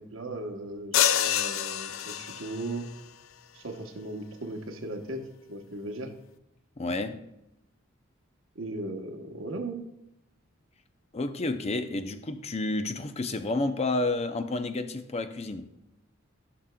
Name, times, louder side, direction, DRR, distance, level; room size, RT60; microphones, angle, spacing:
voice 1, 0.0-2.9 3.5-5.2 5.5-6.1 8.5-9.8, right 2 dB, 85° right, 4 dB, 1.0 m, -37 dB
sound 1, 0.9-2.7, left 10 dB, 90° left, 0.4 m, -27 dB
voice 2, 6.8-7.2 11.1-15.7, left 2 dB, 30° left, 9 dB, 0.5 m, -30 dB
14.0 x 6.0 x 2.2 m, 0.89 s
head